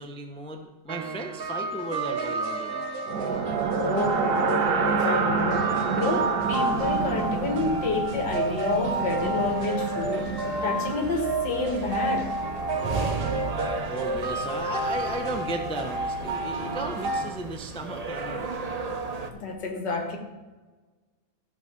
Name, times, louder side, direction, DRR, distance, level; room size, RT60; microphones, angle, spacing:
voice 1, 0.0-2.9 13.9-18.6, right 2 dB, 5° left, 4 dB, 0.6 m, -35 dB
sound 1, 0.9-17.3, right 2 dB, 40° right, 1.0 m, -30 dB
sound 2, 3.1-11.1, right 5 dB, 60° right, 1.5 m, -29 dB
voice 2, 3.7-10.3 10.6-12.3 19.3-20.2, left 3 dB, 75° left, 2 dB, 2.3 m, -29 dB
sound 3, 6.4-19.3, right 3 dB, 80° right, 0.3 m, -36 dB
15.5 x 5.9 x 6.1 m, 1.3 s
omnidirectional pair, 1.9 m